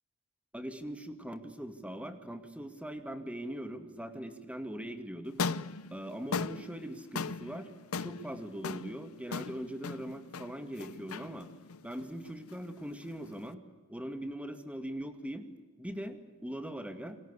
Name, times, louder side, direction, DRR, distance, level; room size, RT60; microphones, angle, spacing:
voice 1, 0.5-5.4 5.9-7.7 8.0-11.5 11.8-13.6 13.9-15.5 15.8-17.2, equal, 5° right, 8 dB, 2.2 m, -41 dB
sound 1, 5.3-13.5, left 4 dB, 90° left, 0.8 m, -39 dB
29.0 x 22.0 x 8.3 m, 1.3 s
head